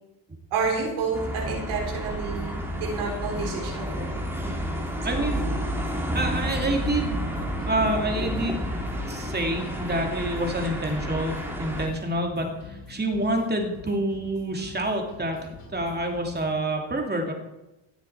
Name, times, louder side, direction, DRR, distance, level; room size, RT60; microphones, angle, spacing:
voice 1, 0.5-2.5 2.8-4.1 5.1-5.3, right 4 dB, 85° right, -1 dB, 4.0 m, -29 dB
sound 1, 0.6-16.6, left 4 dB, 80° left, 3.9 m, -45 dB
sound 2, 1.1-11.9, equal, 5° right, 2.5 m, -30 dB
voice 2, 5.0-5.4 6.1-7.2 7.6-8.8 9.1-15.4 15.7-17.3, right 1 dB, 20° right, 2 dB, 2.7 m, -27 dB
17.5 x 7.3 x 4.6 m, 0.98 s
cardioid pair, 95°, 48 cm